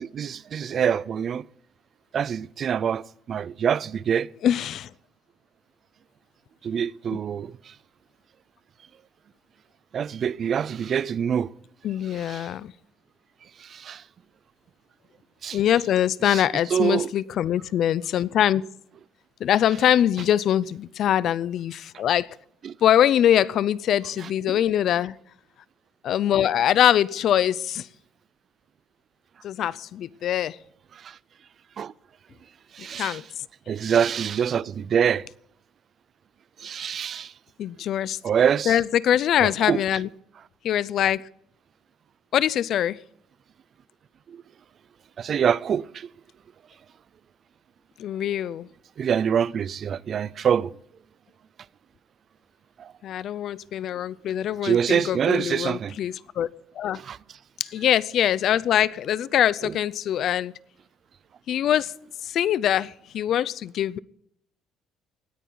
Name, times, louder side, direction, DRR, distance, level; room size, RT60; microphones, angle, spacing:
voice 1, 0.0-1.4 2.1-3.0 3.3-4.3 6.6-7.5 9.9-11.5 12.1-12.5 13.7-14.0 15.4-15.6 16.2-16.4 16.7-17.1 22.6-22.7 24.2-24.6 31.8-31.9 32.8-33.2 33.7-35.2 36.6-37.3 38.2-38.8 39.4-39.8 45.2-46.1 49.0-50.7 52.8-52.9 54.6-56.0 56.9-57.2 59.6-59.7, right 8 dB, 40° right, 0.4 m, -25 dB
voice 2, 4.4-4.9 11.8-12.7 15.5-18.6 19.4-22.3 22.8-25.1 26.0-27.9 29.4-30.6 33.0-33.2 37.6-38.2 38.7-40.1 40.6-41.2 42.3-43.0 48.0-48.7 53.0-56.5 56.8-57.0 57.6-60.5 61.5-61.9 62.2-64.0, left 10 dB, 50° left, 0.5 m, -23 dB
19.5 x 14.0 x 3.9 m
cardioid pair, 145°, 0 cm